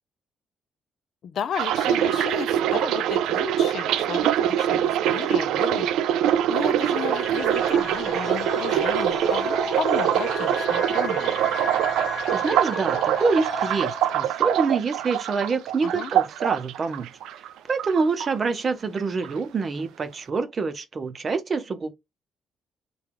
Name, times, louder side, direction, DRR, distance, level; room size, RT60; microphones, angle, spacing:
voice 1, 1.2-5.9 6.5-11.4 15.8-16.1, left 8 dB, 65° left, 0.4 m, -34 dB
sound 1, 1.5-17.5 17.8-18.7 19.0-19.3, right 10 dB, 85° right, 0.3 m, -24 dB
sound 2, 6.8-14.4, left 3 dB, 30° left, 0.7 m, -34 dB
voice 2, 12.3-17.1 17.7-21.9, right 4 dB, 40° right, 0.6 m, -26 dB
3.5 x 2.3 x 2.9 m
cardioid pair, 90°, 0 cm